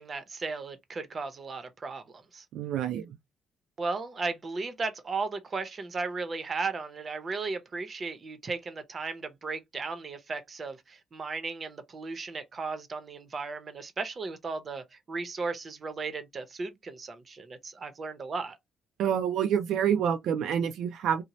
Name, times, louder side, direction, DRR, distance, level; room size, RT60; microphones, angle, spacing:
voice 1, 0.0-2.4 3.8-18.6, right 4 dB, 40° right, 0.7 m, -35 dB
voice 2, 2.5-3.2 19.0-21.2, right 8 dB, 80° right, 0.3 m, -27 dB
2.7 x 2.0 x 2.9 m
cardioid pair, 90°, 0 cm